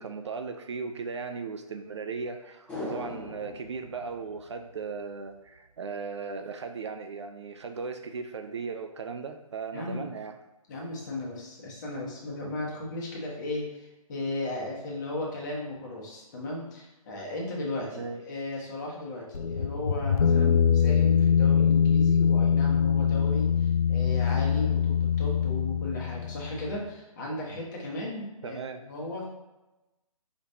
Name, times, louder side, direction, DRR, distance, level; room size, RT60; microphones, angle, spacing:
voice 1, 0.0-10.4 18.0-18.2 28.4-28.8, right 5 dB, 50° right, 6 dB, 0.4 m, -37 dB
sound 1, 2.7-5.2 5.5-5.6, left 2 dB, 5° left, 1.0 m, -40 dB
voice 2, 9.7-10.1 10.7-28.6 28.8-29.2, left 2 dB, 30° left, -3 dB, 1.2 m, -36 dB
sound 2, 19.3-26.8, left 7 dB, 85° left, 0.4 m, -23 dB
4.9 x 3.3 x 2.7 m, 1.0 s
figure-of-eight pair, 140°, 19 cm